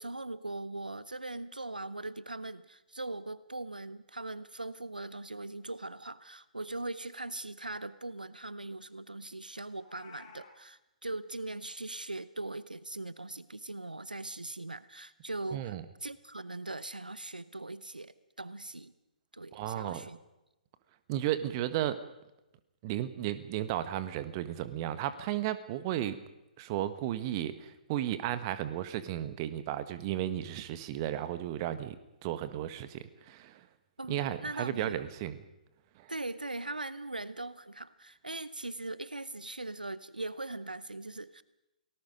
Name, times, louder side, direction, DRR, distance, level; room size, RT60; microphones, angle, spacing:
voice 1, 0.0-18.9 19.3-20.2 34.0-35.1 36.1-41.4, right 2 dB, 80° right, 17 dB, 0.8 m, -40 dB
Meow, 9.7-10.5, left 4 dB, 40° left, 6.0 m, -53 dB
voice 2, 15.5-15.8 19.5-20.1 21.1-22.0 22.8-26.2 26.6-31.9 32.2-33.6 34.1-35.4, right 12 dB, 30° right, 12 dB, 1.5 m, -34 dB
28.5 x 19.0 x 5.3 m, 0.91 s
figure-of-eight pair, 125°, 4 cm